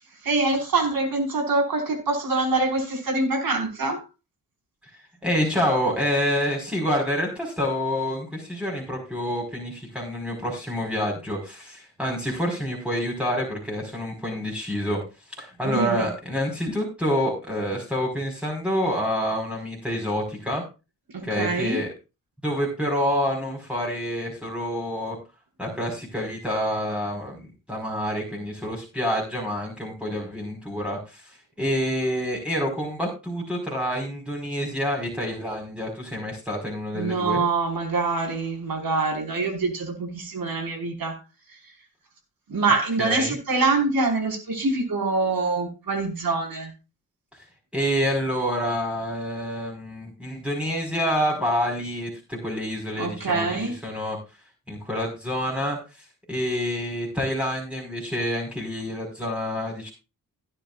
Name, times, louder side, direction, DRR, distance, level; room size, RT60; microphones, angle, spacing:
voice 1, 0.2-4.1 15.6-16.1 21.1-21.8 36.9-41.2 41.5-41.6 42.5-46.7 53.0-53.8, right 3 dB, 65° right, 3 dB, 5.1 m, -25 dB
voice 2, 5.2-15.0 15.4-20.6 21.2-21.9 22.4-25.2 25.6-37.4 43.0-43.3 47.7-54.2 54.7-59.9, equal, 5° right, -2 dB, 4.9 m, -27 dB
16.5 x 9.5 x 2.5 m, 0.30 s
supercardioid pair, 55°, 39 cm